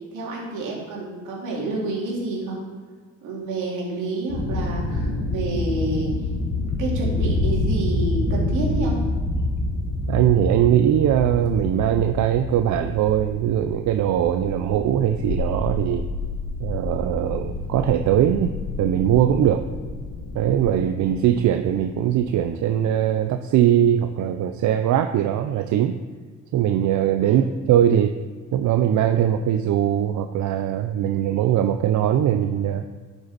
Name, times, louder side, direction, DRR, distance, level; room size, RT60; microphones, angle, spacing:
voice 1, 0.1-2.6 3.2-6.1 6.8-9.0 27.2-27.4, right 2 dB, 85° right, -3 dB, 2.5 m, -29 dB
sound 1, 4.3-22.6, left 2 dB, 75° left, 2.2 m, -28 dB
voice 2, 10.1-16.0 16.6-19.6 20.3-26.0 26.5-28.2 28.5-32.8, right 10 dB, 70° right, 7 dB, 0.5 m, -21 dB
10.5 x 5.3 x 4.2 m, 1.5 s
cardioid pair, 90°, 30 cm